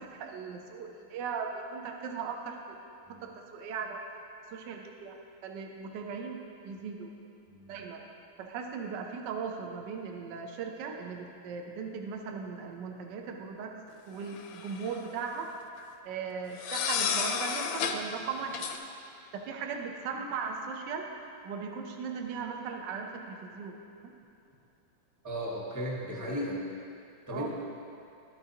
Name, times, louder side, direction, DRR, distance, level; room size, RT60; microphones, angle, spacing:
voice 1, 0.0-2.9 3.2-4.0 4.5-5.1 5.4-6.4 6.6-7.1 7.7-8.0 8.4-13.7 14.1-15.5 16.0-18.6 19.3-21.1 21.4-23.7 24.0-24.1 27.3-27.5, right 5 dB, 70° right, 3 dB, 1.3 m, -38 dB
voice 2, 7.5-7.9 25.2-26.6 27.3-27.5, equal, 10° right, -4 dB, 1.0 m, -35 dB
sound 1, 14.3-15.0 16.6-18.0 18.5-18.8, left 7 dB, 80° left, 1.4 m, -31 dB
12.5 x 9.4 x 2.8 m, 2.6 s
omnidirectional pair, 2.2 m